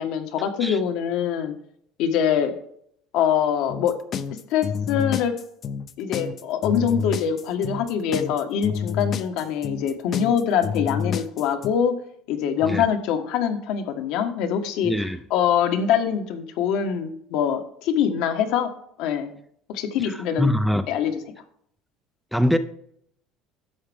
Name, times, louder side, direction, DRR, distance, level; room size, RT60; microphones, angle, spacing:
voice 1, 0.0-1.5 2.0-2.5 3.1-3.9 4.5-5.4 6.0-12.0 12.3-14.9 15.3-18.7 19.0-19.3 19.7-20.5 20.9-21.2, left 8 dB, 70° left, 1.5 m, -24 dB
sound 1, 3.7-11.7, left 7 dB, 40° left, 0.6 m, -29 dB
voice 2, 14.8-15.2 20.0-20.8 22.3-22.6, equal, ahead, 0.5 m, -23 dB
11.5 x 7.4 x 3.6 m
cardioid pair, 140°, 0 cm